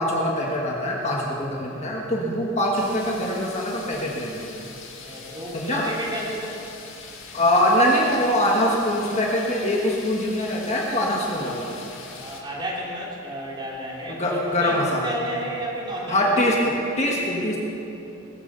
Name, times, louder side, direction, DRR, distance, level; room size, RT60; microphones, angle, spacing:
voice 1, 0.0-4.5 5.5-5.8 7.3-11.8 14.1-15.1 16.1-17.6, left 1 dB, 30° left, -2 dB, 1.5 m, -23 dB
sound 1, 2.8-12.4, left 4 dB, 55° left, 1.9 m, -42 dB
voice 2, 5.0-6.6 12.1-16.4, right 1 dB, 20° right, -5 dB, 3.1 m, -32 dB
21.5 x 8.3 x 6.8 m, 3.0 s
head